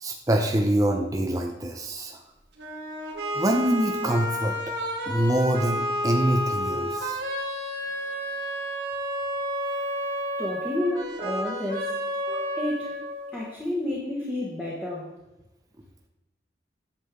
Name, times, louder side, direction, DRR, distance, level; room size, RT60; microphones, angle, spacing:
voice 1, 0.0-2.2 3.3-4.6 5.1-7.2 12.3-12.5, right 1 dB, 20° right, 2 dB, 0.6 m, -25 dB
sound 1, 2.6-13.6, equal, 80° right, 2.4 m, -31 dB
voice 2, 10.4-11.9 12.5-13.0 13.3-15.1, left 1 dB, 5° left, -6 dB, 1.4 m, -30 dB
9.3 x 7.5 x 3.7 m, 0.95 s
head